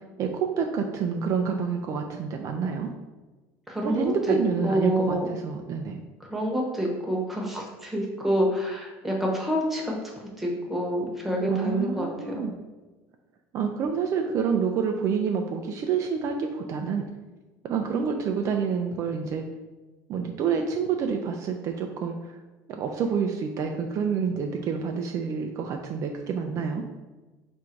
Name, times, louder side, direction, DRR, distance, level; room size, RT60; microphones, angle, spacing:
voice 1, 0.2-2.9 3.8-6.0 11.5-12.5 13.5-17.1 17.6-19.4 20.1-22.4 22.7-26.8, right 6 dB, 45° right, 4 dB, 0.4 m, -28 dB
voice 2, 3.7-4.4 4.6-5.3 6.3-9.9 10.4-12.1 12.4-12.5, equal, 5° right, -2 dB, 0.9 m, -27 dB
3.6 x 2.6 x 4.4 m, 1.2 s
supercardioid pair, 120°, 7 cm